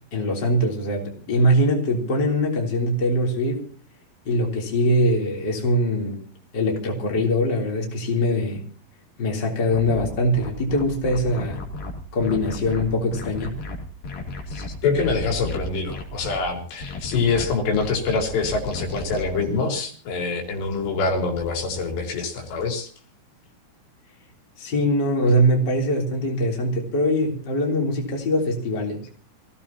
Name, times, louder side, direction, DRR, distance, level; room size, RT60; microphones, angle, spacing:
voice 1, 0.1-3.7 4.3-6.2 6.5-8.6 9.2-11.6 12.1-13.6 24.6-29.0, equal, 25° left, -1 dB, 3.6 m, -22 dB
sound 1, 9.7-16.4 16.8-19.2, left 4 dB, 55° left, 4.6 m, -33 dB
voice 2, 14.5-22.9, left 4 dB, 85° left, 1 dB, 5.6 m, -25 dB
26.5 x 16.5 x 2.9 m, 0.42 s
omnidirectional pair, 4.9 m